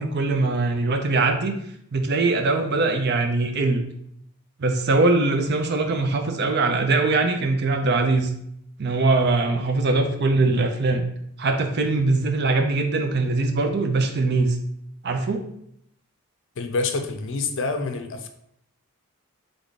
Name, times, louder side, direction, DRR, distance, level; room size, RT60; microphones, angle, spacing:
voice 1, 0.0-1.5 1.9-3.8 4.6-8.3 8.8-11.0 11.4-14.6 15.0-15.4, right 3 dB, 50° right, 5 dB, 0.5 m, -22 dB
voice 2, 16.6-18.3, left 3 dB, 60° left, 7 dB, 0.5 m, -27 dB
3.6 x 3.5 x 4.0 m, 0.73 s
head